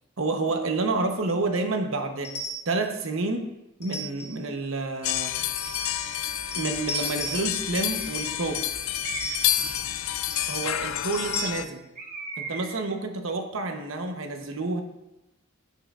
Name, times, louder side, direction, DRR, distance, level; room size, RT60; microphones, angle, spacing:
voice 1, 0.2-2.4 2.7-3.5 3.8-5.4 6.5-8.6 10.4-11.8 12.4-14.8, right 3 dB, 70° right, 5 dB, 1.0 m, -29 dB
sound 1, 2.2-2.8 3.8-4.5 5.6-6.2 6.5-7.6 7.9-8.4 9.2-9.8 10.3-10.7 11.1-11.5, right 2 dB, 50° left, 2.3 m, -36 dB
sound 2, 5.0-11.7, left 11 dB, 75° left, 0.4 m, -29 dB
Bird, 6.8-7.1 7.8-8.4 9.0-9.6 12.0-13.0, right 4 dB, 35° right, 0.9 m, -39 dB
15.0 x 5.7 x 2.5 m, 0.96 s
head